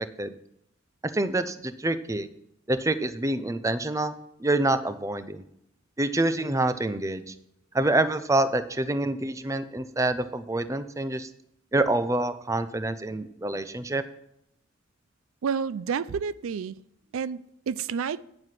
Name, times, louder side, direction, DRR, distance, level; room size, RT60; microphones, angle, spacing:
voice 1, 1.0-2.3 2.7-4.1 4.4-5.4 6.0-7.3 7.7-11.3 11.7-14.0, right 2 dB, 15° right, 0.5 m, -26 dB
voice 2, 15.4-16.8 17.1-18.2, right 6 dB, 85° right, 0.4 m, -30 dB
9.5 x 7.8 x 5.9 m
head